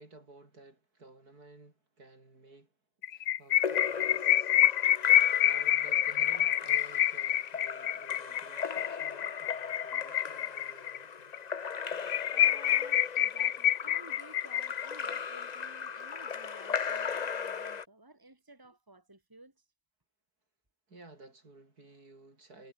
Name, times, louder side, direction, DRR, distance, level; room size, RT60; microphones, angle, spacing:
voice 1, 0.0-2.8 3.1-11.3 20.9-22.7, right 2 dB, 70° right, 5.8 m, -55 dB
sound 1, 3.0-11.0 11.3-11.4 11.7-11.8 12.1-15.2, left 12 dB, 65° left, 1.0 m, -27 dB
Splash splatter / Drip / Trickle dribble, 3.5-17.8, left 6 dB, 40° left, 0.6 m, -38 dB
voice 2, 12.3-19.6, right 2 dB, 10° right, 3.5 m, -55 dB
omnidirectional pair, 1.7 m